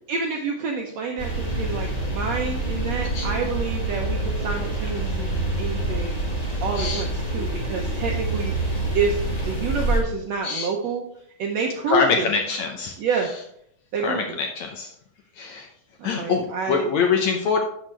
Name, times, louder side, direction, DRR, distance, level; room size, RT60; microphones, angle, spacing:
voice 1, 0.1-6.2 6.6-7.1 7.3-11.0 11.4-12.3 13.0-13.3 13.9-14.2 16.0-16.9 17.2-17.5, right 4 dB, 75° right, 1 dB, 1.6 m, -28 dB
sound 1, 1.2-10.0, right 2 dB, 30° left, 0.7 m, -26 dB
voice 2, 11.9-13.0 14.0-14.9 15.4-15.7 16.0-17.6, left 5 dB, 70° left, 3 dB, 1.8 m, -24 dB
12.0 x 6.5 x 3.3 m, 0.70 s
omnidirectional pair, 4.1 m